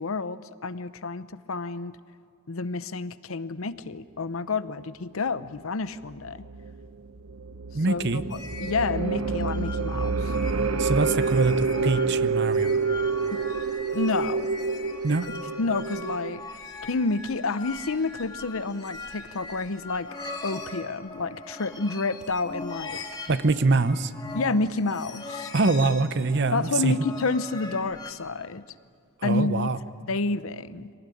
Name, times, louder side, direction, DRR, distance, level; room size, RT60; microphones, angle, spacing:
voice 1, 0.0-2.0 2.5-6.4 7.9-8.2 8.6-10.3 13.3-13.4 13.9-14.5 15.6-20.1 20.4-23.0 24.3-25.5 26.5-28.6 29.2-29.7 30.1-30.9, left 3 dB, 75° left, 14 dB, 0.8 m, -29 dB
sound 1, 6.1-16.4, right 4 dB, 80° right, 0.9 m, -28 dB
voice 2, 7.7-8.2 10.8-12.7 15.0-15.2 23.3-24.1 25.5-27.0 29.2-29.8, right 3 dB, 55° right, 14 dB, 0.8 m, -24 dB
sound 2, 8.3-28.1, left 3 dB, 20° left, 2.5 m, -41 dB
24.5 x 18.5 x 10.0 m, 2.3 s
head